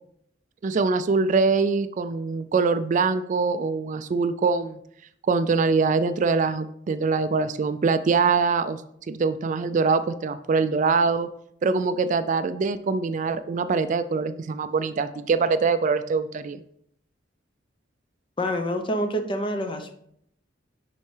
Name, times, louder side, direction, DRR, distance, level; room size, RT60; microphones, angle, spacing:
voice 1, 0.6-4.8 5.3-8.8 9.1-11.3 11.6-16.6, right 4 dB, 40° right, 11 dB, 0.3 m, -23 dB
voice 2, 18.4-19.9, equal, 25° left, 6 dB, 0.7 m, -27 dB
10.5 x 4.5 x 3.3 m, 0.71 s
head